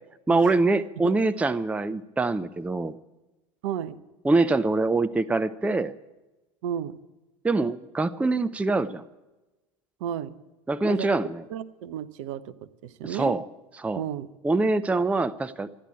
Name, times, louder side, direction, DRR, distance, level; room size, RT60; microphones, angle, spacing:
voice 1, 0.3-3.0 4.2-5.9 7.4-9.0 10.7-11.4 13.0-13.4 13.8-14.0 14.4-15.7, right 3 dB, 5° right, 15 dB, 0.5 m, -24 dB
voice 2, 3.6-4.0 6.6-7.0 10.0-10.4 10.9-11.1 11.5-13.3 13.9-14.3, right 10 dB, 60° right, 12 dB, 0.9 m, -33 dB
14.0 x 10.0 x 8.9 m, 1.1 s
figure-of-eight pair, 75°, 18 cm